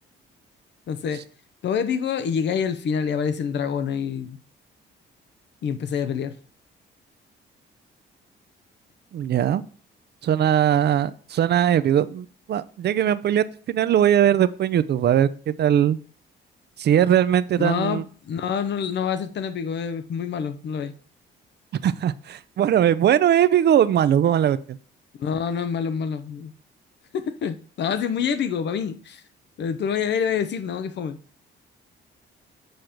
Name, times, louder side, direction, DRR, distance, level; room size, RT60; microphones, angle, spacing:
voice 1, 0.9-1.2 1.6-4.4 5.6-6.3 17.6-20.9 25.2-26.5 27.1-29.2 29.6-31.2, left 7 dB, 60° left, 0.8 m, -26 dB
voice 2, 9.1-9.6 10.2-16.0 16.8-18.0 21.7-24.8, right 10 dB, 55° right, 0.6 m, -20 dB
8.0 x 4.4 x 5.1 m
cardioid pair, 90°, 20 cm